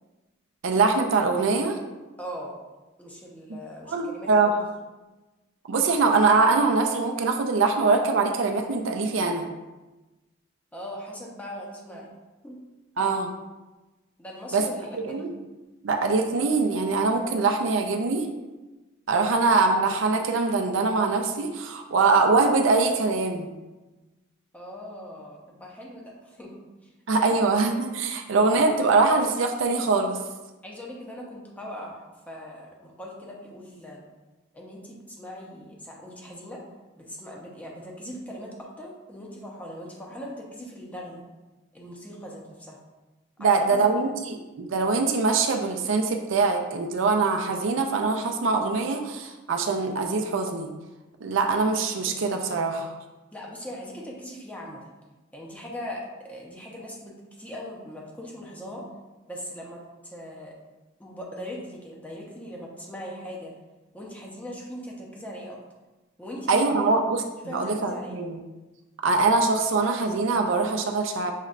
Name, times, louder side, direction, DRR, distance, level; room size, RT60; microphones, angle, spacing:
voice 1, 0.6-1.8 3.9-4.5 5.7-9.5 13.0-13.3 14.5-14.6 14.9-15.3 15.8-18.3 19.1-23.5 27.1-30.2 43.4-50.7 51.2-52.9 66.5-67.2 67.5-68.4 69.0-71.3, right 4 dB, 75° right, 4 dB, 0.5 m, -23 dB
voice 2, 2.2-2.5 3.0-4.5 10.7-12.1 12.4-12.6 14.2-15.2 24.5-26.9 27.2-27.4 30.6-34.0 34.5-36.6 37.0-41.2 41.7-42.8 43.4-43.9 53.3-54.9 55.3-58.8 59.3-60.5 61.0-63.5 63.9-65.6 66.2-67.0 67.5-68.2, equal, 10° left, -3 dB, 0.7 m, -40 dB
6.4 x 3.2 x 2.4 m, 1.1 s
head